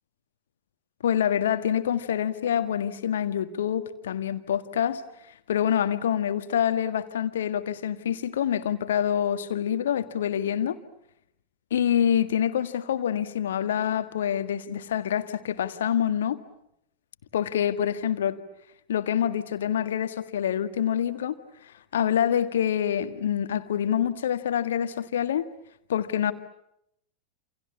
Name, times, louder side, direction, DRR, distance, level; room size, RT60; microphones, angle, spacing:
voice 1, 1.0-5.0 5.5-10.8 11.7-16.4 17.3-18.4 18.9-21.3 21.9-25.5 25.9-26.3, left 9 dB, 60° left, 11 dB, 1.7 m, -26 dB
28.5 x 27.5 x 7.1 m, 0.77 s
figure-of-eight pair, 90°, 0 cm